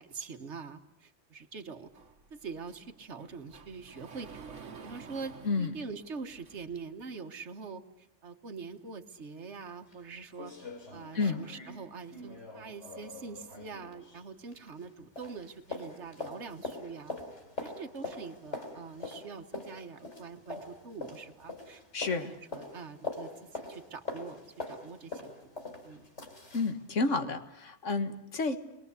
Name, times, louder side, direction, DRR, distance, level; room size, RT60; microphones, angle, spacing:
voice 1, 0.0-1.9 2.3-10.5 10.9-17.2 17.6-21.8 22.1-24.4 24.7-25.5 25.8-26.1 28.1-28.2, right 5 dB, 70° right, 7 dB, 1.8 m, -44 dB
Sliding door, 1.9-6.9, right 5 dB, 85° right, 1.8 m, -51 dB
voice 2, 5.4-5.8 11.1-11.4 21.9-22.3 26.5-28.6, left 3 dB, 90° left, 8 dB, 2.0 m, -30 dB
sound 1, 9.5-9.6 9.9-10.0 10.3-14.9 15.2-26.8 27.1-27.2, left 2 dB, 70° left, 4.3 m, -43 dB
29.5 x 22.0 x 8.3 m, 0.82 s
omnidirectional pair, 1.2 m